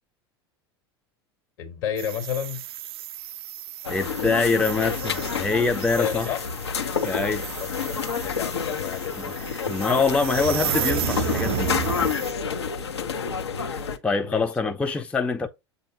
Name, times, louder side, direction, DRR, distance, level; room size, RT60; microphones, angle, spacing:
voice 1, 1.6-2.6 6.0-6.4 7.6-9.3 12.8-13.0 14.2-14.8, left 9 dB, 55° left, 1.6 m, -31 dB
sound 1, 2.0-12.3, right 12 dB, 60° right, 0.4 m, -33 dB
sound 2, 3.8-14.0, left 6 dB, 75° left, 0.7 m, -29 dB
voice 2, 3.9-6.3 7.0-7.4 9.2-11.7 13.6-15.5, left 4 dB, 10° left, 0.5 m, -25 dB
7.1 x 2.7 x 5.1 m
figure-of-eight pair, 80°, 14 cm